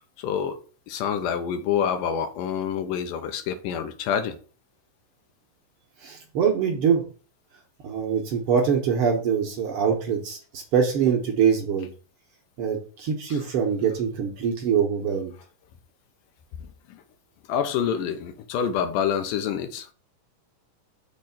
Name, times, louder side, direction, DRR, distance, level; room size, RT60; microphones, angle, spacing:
voice 1, 0.2-0.6 0.9-4.4 13.3-13.4 16.9-17.0 17.5-19.9, left 8 dB, 80° left, 2.3 m, -27 dB
voice 2, 6.0-7.0 7.8-11.9 12.6-15.3, right 7 dB, 70° right, 1.3 m, -24 dB
6.6 x 3.1 x 5.7 m
omnidirectional pair, 3.9 m